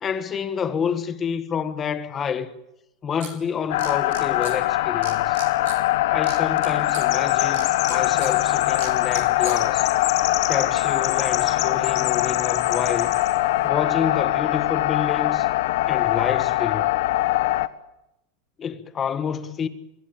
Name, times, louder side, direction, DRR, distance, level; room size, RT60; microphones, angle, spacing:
voice 1, 0.0-2.5 3.0-5.4 6.1-9.9 10.5-13.1 13.6-15.5 15.9-16.9 18.6-19.7, left 7 dB, 20° left, 1.7 m, -28 dB
sound 1, 3.2-3.3 3.8-4.6 5.0-5.8 6.2-7.0 7.5-8.3 8.8-9.6, right 12 dB, 75° right, 6.9 m, -37 dB
sound 2, 3.7-17.7, left 16 dB, 70° left, 1.3 m, -22 dB
Chirp tweet, 6.8-13.4, left 15 dB, 40° left, 3.0 m, -32 dB
26.5 x 21.0 x 9.0 m
supercardioid pair, 155°, 0 cm